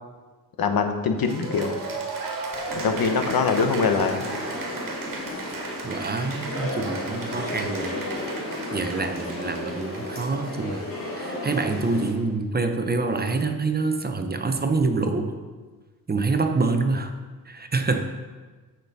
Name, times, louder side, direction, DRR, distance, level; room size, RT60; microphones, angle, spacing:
voice 1, 0.6-1.8 2.7-4.3, left 5 dB, 80° left, 6 dB, 1.0 m, -23 dB
Cheering / Applause, 1.2-10.8, right 3 dB, 65° right, 1.6 m, -36 dB
sound 1, 2.7-12.1, left 1 dB, 35° left, 2.9 m, -33 dB
voice 2, 5.8-8.0 8.7-10.9 11.1-15.3 16.1-17.1 17.5-18.0, right 3 dB, 25° right, 6 dB, 0.7 m, -26 dB
13.5 x 5.9 x 4.1 m, 1.4 s
wide cardioid pair, 125°, 36 cm